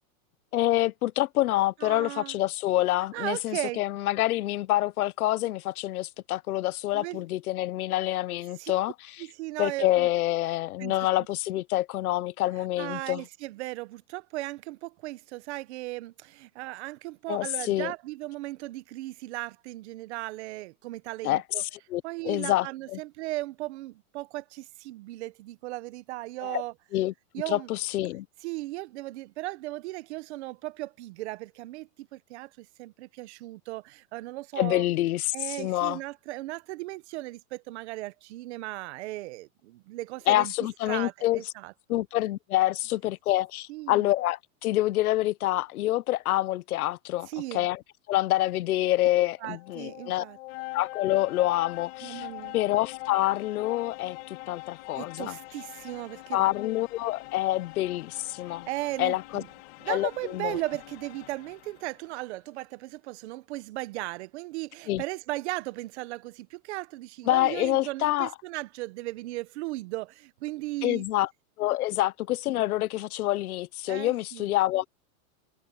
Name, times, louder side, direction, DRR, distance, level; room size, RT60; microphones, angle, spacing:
voice 1, 0.5-8.9 9.6-13.2 17.3-17.9 21.2-23.0 26.4-26.6 26.9-27.1 27.5-28.3 34.6-36.0 40.3-41.4 41.9-47.3 47.5-47.8 48.1-50.2 50.7-52.3 52.5-55.4 56.3-58.7 59.0-59.4 59.9-60.6 64.9-65.0 67.3-68.3 70.8-71.3 71.6-74.9, left 16 dB, 75° left, 0.9 m, -27 dB
voice 2, 1.8-2.4 3.1-3.8 6.9-7.2 8.6-8.7 9.2-10.1 10.8-10.9 12.8-21.6 22.0-26.7 27.3-27.7 28.4-34.9 35.3-40.5 40.9-42.0 43.7-44.1 47.3-47.7 49.4-50.4 52.0-52.5 55.0-56.5 58.4-59.5 59.8-71.0 73.9-74.5, right 19 dB, 50° right, 1.0 m, -37 dB
sound 1, 49.3-62.1, left 22 dB, 45° left, 1.7 m, -43 dB
supercardioid pair, 155°, 44 cm